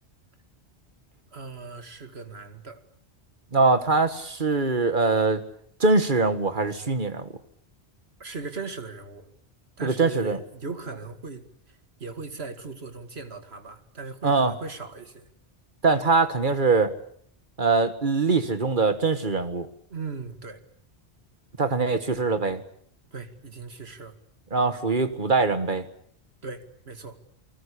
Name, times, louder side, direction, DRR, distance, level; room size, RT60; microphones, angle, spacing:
voice 1, 1.3-2.8 8.2-9.3 9.8-15.3 19.9-20.6 23.1-24.1 26.4-27.2, right 4 dB, 70° right, 8 dB, 2.6 m, -38 dB
voice 2, 3.5-5.4 5.8-7.3 9.8-10.4 14.2-14.5 15.8-16.9 17.6-19.7 21.6-22.6 24.5-25.9, right 3 dB, 45° right, 10 dB, 2.0 m, -22 dB
29.0 x 20.5 x 8.6 m, 0.62 s
omnidirectional pair, 1.1 m